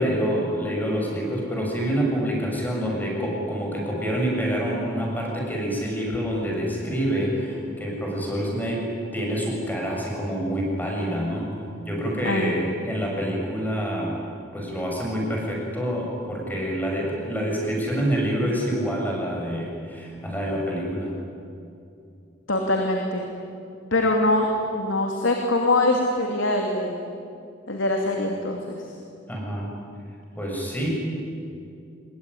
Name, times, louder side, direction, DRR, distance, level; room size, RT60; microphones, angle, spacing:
voice 1, 0.0-11.5 11.8-14.2 14.5-21.1 29.3-29.7 30.4-30.9, equal, 10° left, -1 dB, 7.3 m, -27 dB
voice 2, 12.2-12.6 22.5-23.2 23.9-27.0 27.7-28.9, left 2 dB, 90° left, 2 dB, 2.8 m, -23 dB
26.5 x 22.0 x 9.9 m, 2.5 s
head